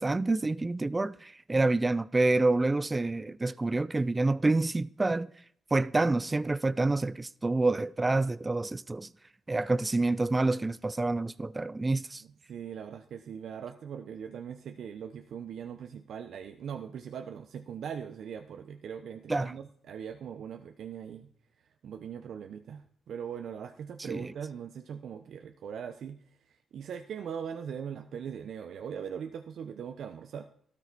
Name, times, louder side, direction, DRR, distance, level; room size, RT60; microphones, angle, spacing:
voice 1, 0.0-5.3 5.7-9.1 9.5-12.2 19.3-19.5 24.1-24.2, right 2 dB, 25° right, 0.5 m, -27 dB
voice 2, 12.2-21.3 21.8-26.2 26.5-30.5, right 8 dB, 70° right, 0.9 m, -40 dB
13.0 x 13.0 x 4.2 m
cardioid pair, 70°, 0 cm